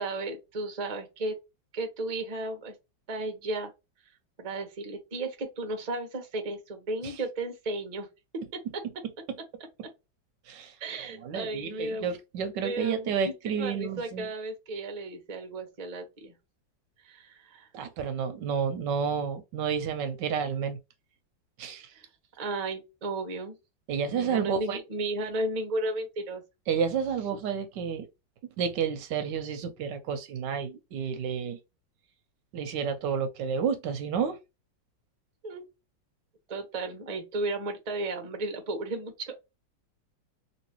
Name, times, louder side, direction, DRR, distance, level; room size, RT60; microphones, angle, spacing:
voice 1, 0.0-1.4 1.7-2.7 3.1-3.7 4.4-8.1 8.3-8.4 8.7-8.8 10.8-12.1 12.6-16.3 17.0-17.7 21.9-22.1 22.4-23.6 24.1-26.4 35.4-35.7 36.5-39.3, right 2 dB, 40° right, 0.6 m, -34 dB
voice 2, 11.2-14.3 17.7-20.8 21.6-21.9 23.9-24.8 26.7-28.1 28.6-31.6 32.5-34.4, right 6 dB, 75° right, 1.2 m, -30 dB
3.1 x 2.9 x 2.9 m
omnidirectional pair, 2.1 m